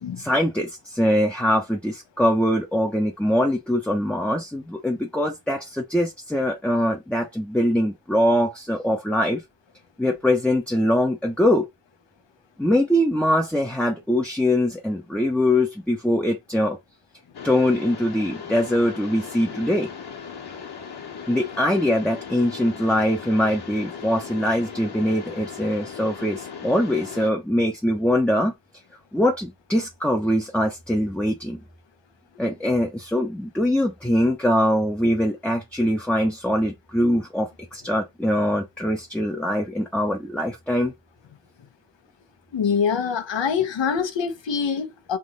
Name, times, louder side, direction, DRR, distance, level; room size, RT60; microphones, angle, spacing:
voice 1, 0.2-9.4 10.0-11.6 12.6-16.8 17.4-19.9 21.3-28.5 29.1-31.6 32.4-40.9, left 1 dB, 5° left, 0.5 m, -22 dB
Mechanisms, 17.3-27.3, left 6 dB, 60° left, 1.3 m, -38 dB
voice 2, 42.5-45.2, left 6 dB, 85° left, 1.0 m, -24 dB
3.6 x 2.9 x 3.8 m
wide cardioid pair, 165°, 43 cm